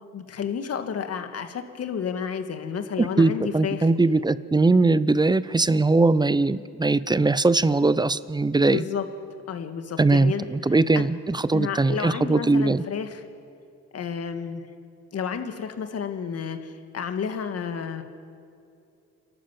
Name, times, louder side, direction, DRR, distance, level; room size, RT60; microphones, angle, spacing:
voice 1, 0.1-3.9 8.6-9.1 9.5-10.4 10.9-11.0 11.5-13.2 13.9-14.6 15.1-18.0, left 7 dB, 55° left, 7 dB, 1.9 m, -31 dB
voice 2, 3.0-8.8 10.0-12.8, right 3 dB, 15° right, 16 dB, 0.6 m, -21 dB
29.0 x 12.0 x 7.6 m, 2.5 s
cardioid pair, 90°, 30 cm